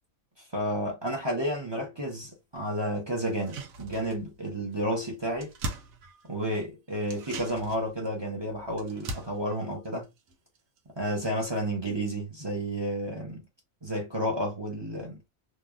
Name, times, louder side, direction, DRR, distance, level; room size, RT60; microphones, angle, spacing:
voice 1, 0.5-5.5 6.2-10.1 11.0-13.4 13.8-15.2, equal, 25° right, 0.8 m, -31 dB
sound 1, 3.3-4.4 4.7-4.8 5.1-6.6 7.0-10.8 11.1-11.2, right 2 dB, 85° right, 1.1 m, -41 dB
3.0 x 2.5 x 2.3 m
omnidirectional pair, 1.4 m